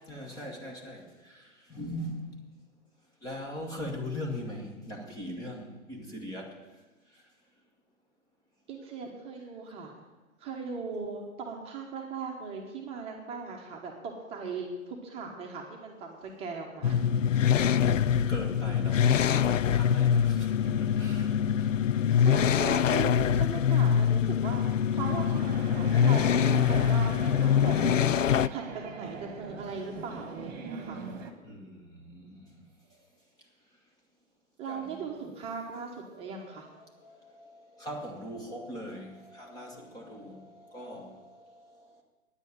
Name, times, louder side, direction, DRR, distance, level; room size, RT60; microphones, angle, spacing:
voice 1, 0.1-2.4 3.2-6.6 7.1-7.2 18.1-21.7 31.4-32.6 32.9-33.0 34.7-35.1 36.1-42.0, left 1 dB, 10° left, 1.2 m, -41 dB
voice 2, 8.7-9.9 10.4-16.9 22.2-24.7 24.9-28.1 28.5-31.0 34.6-36.7, right 5 dB, 15° right, 1.2 m, -38 dB
sound 1, 16.8-28.5, left 8 dB, 65° left, 0.5 m, -24 dB
sound 2, 25.0-31.3, right 5 dB, 30° right, 1.5 m, -41 dB
9.8 x 8.2 x 9.1 m
figure-of-eight pair, 130°, 43 cm